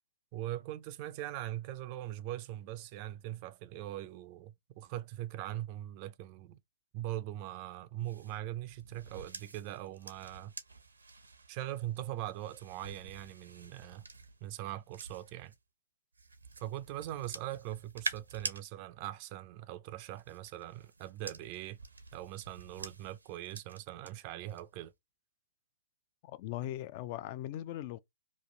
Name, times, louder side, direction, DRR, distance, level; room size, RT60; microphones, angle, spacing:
voice 1, 0.3-6.6 6.9-10.5 11.5-14.1 14.4-15.5 16.6-21.8 22.1-24.9, right 14 dB, 35° right, 0.4 m, -41 dB
sound 1, 8.0-15.6 16.1-18.6 19.9-24.1 24.5-24.8, right 4 dB, 90° right, 0.8 m, -47 dB
voice 2, 26.2-28.0, left 13 dB, 40° left, 0.4 m, -39 dB
3.0 x 2.5 x 3.8 m
hypercardioid pair, 130°, 0 cm